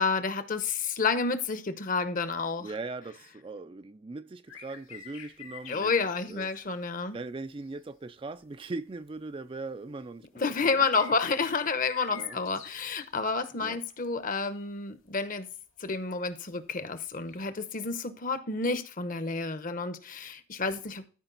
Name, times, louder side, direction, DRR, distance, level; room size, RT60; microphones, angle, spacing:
voice 1, 0.0-2.7 5.7-7.2 10.4-15.5 15.8-21.1, left 4 dB, 40° left, 0.8 m, -30 dB
voice 2, 2.6-6.5 7.1-10.8 12.1-12.4 13.6-13.8, right 3 dB, 25° right, 0.3 m, -40 dB
sound 1, 4.5-6.7 7.7-7.8 8.6-8.7 10.5-13.1 14.5-14.7 17.3-17.4, left 6 dB, 75° left, 2.1 m, -47 dB
13.0 x 5.0 x 3.9 m
head